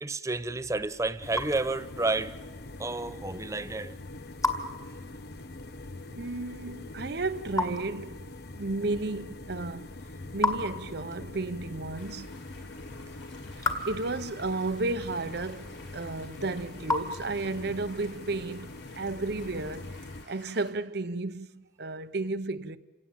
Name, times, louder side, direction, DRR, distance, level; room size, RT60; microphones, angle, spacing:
voice 1, 0.0-2.4 2.8-3.9, right 2 dB, 15° right, 0.7 m, -30 dB
Raindrop / Drip, 0.6-17.8, left 2 dB, 15° left, 2.1 m, -38 dB
sound 1, 1.2-20.2, left 2 dB, 60° left, 0.9 m, -44 dB
voice 2, 6.2-8.2 8.6-9.9 10.3-12.3 13.6-20.0 20.3-22.8, right 3 dB, 60° right, 0.9 m, -33 dB
sound 2, 11.9-20.7, left 3 dB, 75° left, 5.1 m, -53 dB
28.0 x 17.5 x 9.1 m
head